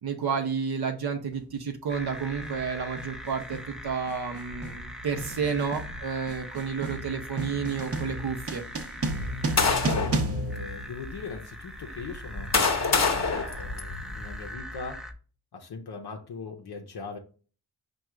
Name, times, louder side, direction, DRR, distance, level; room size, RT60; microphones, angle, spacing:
voice 1, 0.0-8.6, right 6 dB, 75° right, 3 dB, 0.7 m, -31 dB
sound 1, 1.3-1.5 2.4-2.7 3.0-11.5, right 2 dB, 40° right, 0.7 m, -34 dB
sound 2, 1.9-15.1, equal, ahead, 0.5 m, -42 dB
sound 3, 9.1-10.2 11.0-11.1 12.0-14.4, left 4 dB, 45° left, 0.9 m, -26 dB
voice 2, 9.6-15.0 15.5-17.2, left 4 dB, 85° left, 3 dB, 0.7 m, -40 dB
4.8 x 2.4 x 4.4 m, 0.38 s
wide cardioid pair, 75°, 38 cm